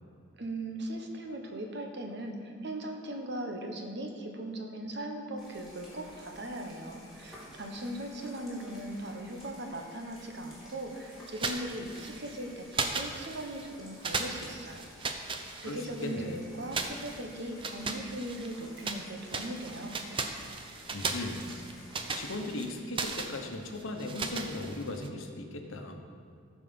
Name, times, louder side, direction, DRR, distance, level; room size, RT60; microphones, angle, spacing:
voice 1, 0.4-14.8 15.6-20.0, right 1 dB, 55° right, 3 dB, 1.2 m, -39 dB
sound 1, 5.4-22.4, equal, ahead, 3.0 m, -53 dB
sound 2, 11.3-12.4 12.7-13.7 14.0-16.1 16.7-19.0 19.3-25.1, right 4 dB, 25° right, 0.6 m, -37 dB
voice 2, 15.6-16.4 20.9-21.5 22.2-26.0, left 2 dB, 75° left, 4 dB, 1.1 m, -37 dB
14.5 x 5.0 x 7.0 m, 2.4 s
head